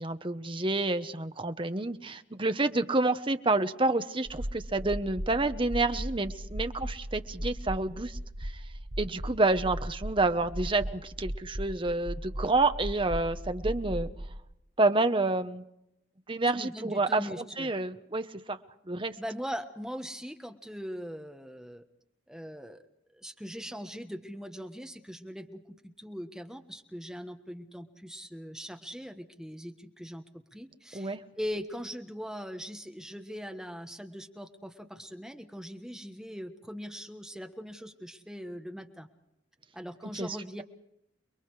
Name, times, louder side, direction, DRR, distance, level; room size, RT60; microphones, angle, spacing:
voice 1, 0.0-8.5 9.0-14.1 14.8-15.6 16.3-18.6 18.9-19.2 30.9-31.2 40.1-40.6, right 2 dB, 25° right, 9 dB, 1.1 m, -29 dB
sound 1, 4.2-14.4, equal, 50° right, 1.7 m, -37 dB
voice 2, 16.5-17.7 19.2-21.8 22.3-22.8 23.1-30.2 30.5-39.1 39.7-40.6, equal, 5° right, 6 dB, 1.3 m, -41 dB
29.5 x 22.0 x 4.9 m, 0.82 s
head